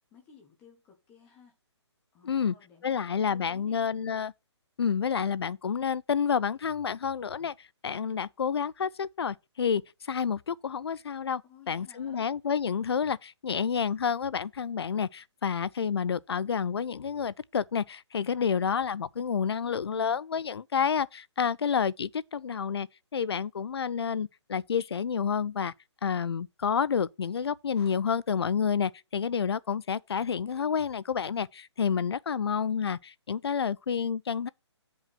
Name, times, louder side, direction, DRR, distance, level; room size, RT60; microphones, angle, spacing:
voice 1, 0.1-1.6 2.1-3.8 11.4-12.3, left 6 dB, 10° left, 1.2 m, -56 dB
voice 2, 2.2-2.5 2.8-4.3 4.8-7.5 7.8-9.8 10.1-11.4 11.7-25.7 26.0-34.5, left 7 dB, 60° left, 0.4 m, -29 dB
7.4 x 5.4 x 5.7 m
hypercardioid pair, 175°, 15 cm